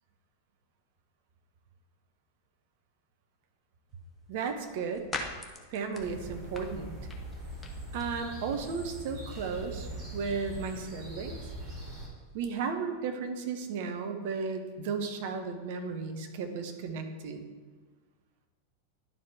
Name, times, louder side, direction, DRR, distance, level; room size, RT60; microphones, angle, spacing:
sound 1, 3.9-12.6, left 3 dB, 10° left, 0.8 m, -47 dB
voice 1, 4.3-5.1 5.7-6.9 7.9-11.4 12.3-17.4, right 5 dB, 50° right, 5 dB, 0.8 m, -34 dB
sound 2, 6.0-12.1, right 1 dB, 25° right, 2.0 m, -42 dB
11.0 x 4.7 x 3.4 m, 1.4 s
figure-of-eight pair, 90°, 0 cm